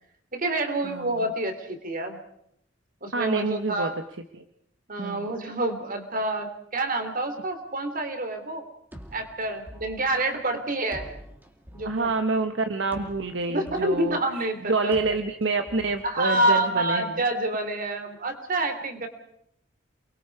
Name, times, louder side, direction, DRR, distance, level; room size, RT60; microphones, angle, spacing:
voice 1, 0.3-2.2 3.0-4.0 4.9-8.6 9.1-11.1 11.7-12.1 13.5-14.9 16.0-19.1, right 2 dB, 50° right, 6 dB, 3.3 m, -27 dB
voice 2, 0.8-1.2 3.1-3.9 4.3-4.4 5.0-5.3 11.8-14.2 14.7-17.2, right 3 dB, 70° right, 7 dB, 1.2 m, -27 dB
sound 1, 8.9-16.8, equal, 10° right, 2.4 m, -47 dB
29.0 x 22.0 x 4.8 m, 0.73 s
head